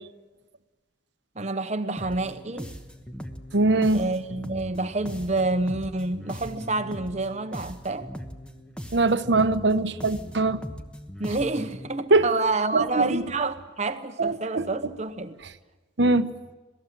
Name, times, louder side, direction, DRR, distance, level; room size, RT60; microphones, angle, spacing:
voice 1, 1.3-2.7 3.9-8.1 11.2-15.4, right 3 dB, 35° right, 1.0 m, -28 dB
sound 1, 2.0-11.9, equal, 5° left, 1.2 m, -39 dB
voice 2, 3.5-4.0 8.9-10.6 12.1-12.3 12.7-13.2 14.2-14.6 16.0-16.3, right 2 dB, 65° right, 1.0 m, -22 dB
27.0 x 18.5 x 7.6 m
head